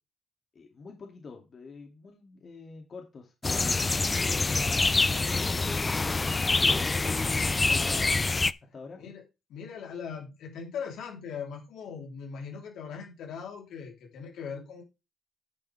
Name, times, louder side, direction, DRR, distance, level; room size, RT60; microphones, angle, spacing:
voice 1, 0.5-4.9 5.3-8.2 8.7-9.0, left 4 dB, 45° left, 2 dB, 2.6 m, -47 dB
sound 1, 3.4-8.5, left 3 dB, 25° left, 0.4 m, -26 dB
voice 2, 9.5-14.8, left 6 dB, 80° left, 0 dB, 3.6 m, -40 dB
10.5 x 7.0 x 3.5 m, 0.26 s
cardioid pair, 90°, 0 cm